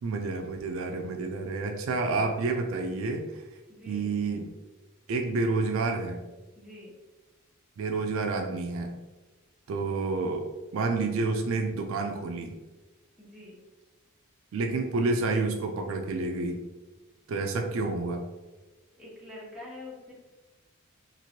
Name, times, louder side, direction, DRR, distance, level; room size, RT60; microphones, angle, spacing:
voice 1, 0.0-3.5 3.9-4.5 5.1-6.2 7.8-8.9 9.7-12.6 14.5-16.6 17.3-18.2, right 3 dB, 65° right, 4 dB, 0.3 m, -29 dB
voice 2, 3.7-4.1 6.6-7.0 13.2-13.6 19.0-20.1, left 2 dB, 5° right, -7 dB, 0.9 m, -46 dB
3.0 x 2.5 x 2.8 m, 1.1 s
head